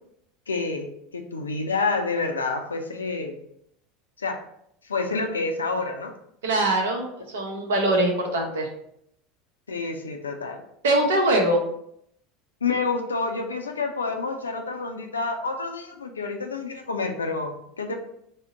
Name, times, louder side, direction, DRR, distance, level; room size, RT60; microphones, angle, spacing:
voice 1, 0.5-0.9 1.1-3.4 4.2-4.4 4.8-6.1 9.7-10.6 12.6-17.9, left 4 dB, 80° left, 4 dB, 0.4 m, -28 dB
voice 2, 6.4-8.7 10.8-11.6, right 1 dB, 70° right, 2 dB, 0.7 m, -22 dB
3.6 x 2.1 x 3.7 m, 0.73 s
figure-of-eight pair, 75°, 0 cm